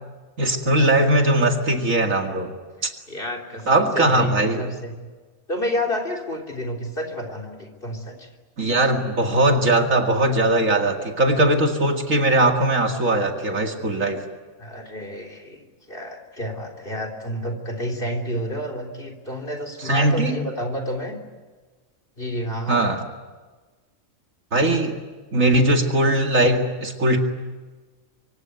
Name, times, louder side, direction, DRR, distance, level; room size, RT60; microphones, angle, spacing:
voice 1, 0.4-2.5 2.8-2.9 3.7-4.7 8.6-14.2 19.8-20.4 22.7-23.0 24.5-25.0 25.3-27.2, right 1 dB, 70° right, 3 dB, 2.6 m, -20 dB
voice 2, 3.1-4.9 5.5-8.3 14.6-21.2 22.2-22.9, equal, 40° left, 6 dB, 3.6 m, -30 dB
25.5 x 25.0 x 9.4 m, 1.3 s
omnidirectional pair, 1.4 m